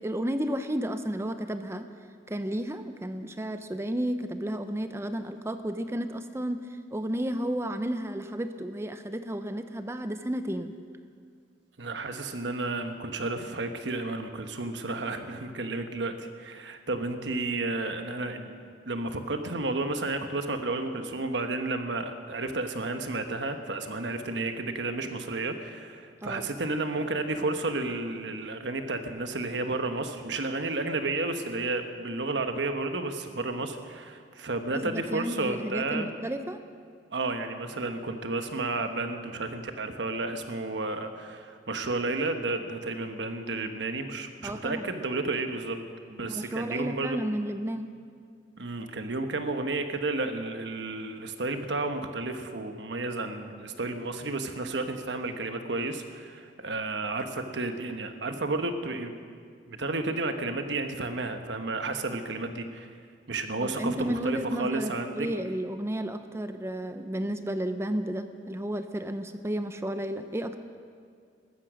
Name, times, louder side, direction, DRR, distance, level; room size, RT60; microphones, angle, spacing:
voice 1, 0.0-1.9 2.3-10.7 26.2-26.5 34.7-36.6 44.4-44.9 46.3-47.9 63.6-70.6, right 1 dB, 15° right, 9 dB, 0.5 m, -32 dB
voice 2, 11.8-18.5 18.8-36.1 37.1-45.8 46.1-47.2 48.6-59.1 59.7-62.9 63.3-65.3, right 2 dB, 80° right, 7 dB, 1.1 m, -32 dB
15.0 x 13.0 x 6.3 m, 2.1 s
head